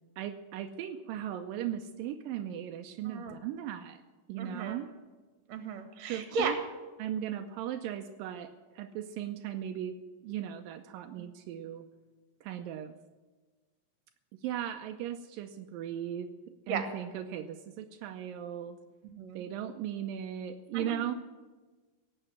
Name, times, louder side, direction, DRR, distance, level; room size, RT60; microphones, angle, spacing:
voice 1, 0.2-4.0 4.3-4.9 6.1-6.6 7.0-11.9 12.4-12.9 14.3-16.3 16.7-18.8 19.3-21.1, right 10 dB, 85° right, 6 dB, 2.4 m, -37 dB
voice 2, 4.4-4.8 5.5-6.5 11.1-11.2 16.7-16.9 19.2-19.4 20.7-21.0, right 5 dB, 55° right, 7 dB, 2.6 m, -35 dB
17.5 x 8.0 x 7.2 m, 1.3 s
omnidirectional pair, 4.0 m